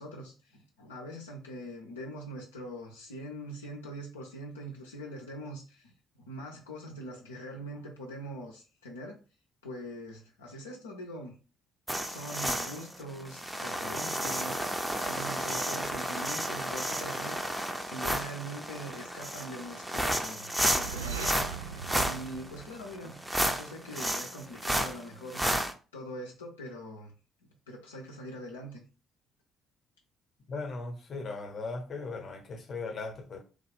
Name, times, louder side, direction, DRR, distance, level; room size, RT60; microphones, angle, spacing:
voice 1, 0.0-5.9 6.2-9.2 9.6-11.4 12.0-21.4 22.1-27.1 27.4-28.8, equal, 80° left, 0.5 m, -43 dB
sound 1, 11.9-25.7, right 1 dB, 10° right, 0.6 m, -32 dB
sound 2, 20.6-23.5, right 7 dB, 80° right, 0.3 m, -40 dB
voice 2, 30.5-33.4, left 3 dB, 45° left, 0.8 m, -38 dB
3.4 x 2.3 x 3.3 m
figure-of-eight pair, 45°, 0 cm